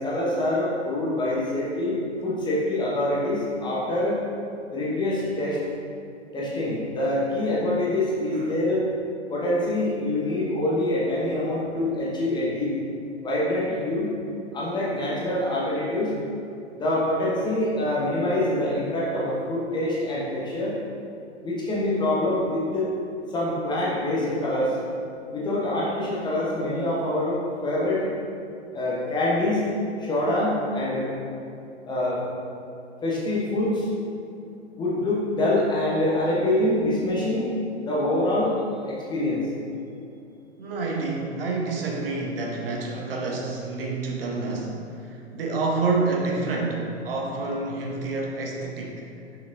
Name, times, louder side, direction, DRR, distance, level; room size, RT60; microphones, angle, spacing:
voice 1, 0.0-1.9 2.2-4.2 4.7-5.6 6.3-8.8 9.3-12.7 13.2-14.1 14.5-16.1 16.8-20.7 21.4-22.9 23.3-24.8 25.3-28.1 28.7-29.7 30.0-31.1 31.9-32.2 33.0-33.9 34.8-37.5 37.9-38.5 38.8-39.4, left 1 dB, 10° left, -6 dB, 0.9 m, -25 dB
voice 2, 40.6-49.1, right 3 dB, 50° right, -1 dB, 1.0 m, -28 dB
6.1 x 6.0 x 2.6 m, 2.6 s
figure-of-eight pair, 110°, 36 cm